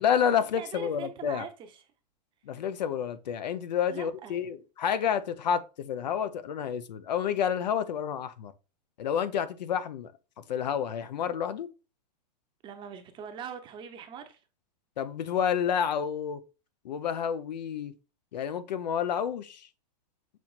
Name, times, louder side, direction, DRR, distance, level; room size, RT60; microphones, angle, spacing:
voice 1, 0.0-1.4 2.5-8.5 9.0-10.1 10.5-11.7 15.0-16.4 16.8-17.9 18.3-19.6, left 8 dB, 85° left, 0.6 m, -29 dB
voice 2, 0.5-1.9 3.9-4.4 12.6-14.4, right 7 dB, 25° right, 0.7 m, -42 dB
6.2 x 2.9 x 2.3 m
hypercardioid pair, 145°, 21 cm